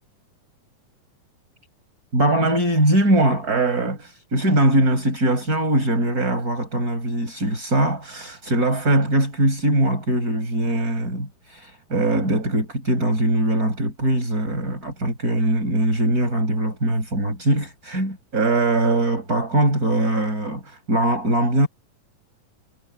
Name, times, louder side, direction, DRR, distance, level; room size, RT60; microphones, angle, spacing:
voice 1, 2.1-21.7, right 1 dB, 25° right, 6.9 m, -21 dB
omnidirectional pair, 3.9 m